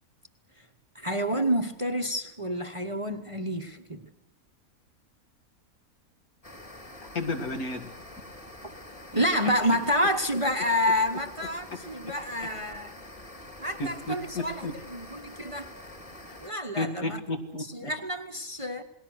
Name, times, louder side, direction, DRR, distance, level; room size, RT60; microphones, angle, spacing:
voice 1, 0.9-4.0 9.1-12.9 13.6-15.7 16.4-17.2 17.7-18.8, equal, 25° right, 0.9 m, -28 dB
sound 1, 6.4-16.5, left 1 dB, 25° left, 2.2 m, -46 dB
voice 2, 7.1-7.9 9.1-9.2 11.7-12.2 12.4-12.5 13.8-14.7 16.3-16.4 16.8-17.9, left 2 dB, 75° left, 2.6 m, -33 dB
28.5 x 19.5 x 6.4 m
omnidirectional pair, 1.6 m